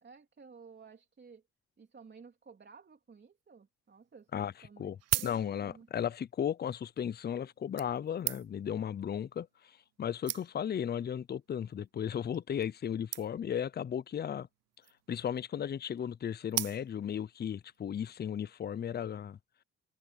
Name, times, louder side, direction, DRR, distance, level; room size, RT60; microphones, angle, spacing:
voice 1, 0.0-1.4 1.8-5.9, right 5 dB, 35° right, 3.3 m, -55 dB
sound 1, 4.0-4.1 4.8-5.9 6.8-7.0 7.8-8.7 9.6-9.7 9.9-10.0 10.3-10.8 11.5-11.7 12.0-12.1 12.3-12.4 12.6-12.8 13.1-13.6 14.6-15.1 16.5-17.2 17.7-17.8, right 15 dB, 55° right, 0.4 m, -37 dB
voice 2, 5.2-14.5 15.1-19.4, left 9 dB, 35° left, 0.5 m, -35 dB
cardioid pair, 90°, 30 cm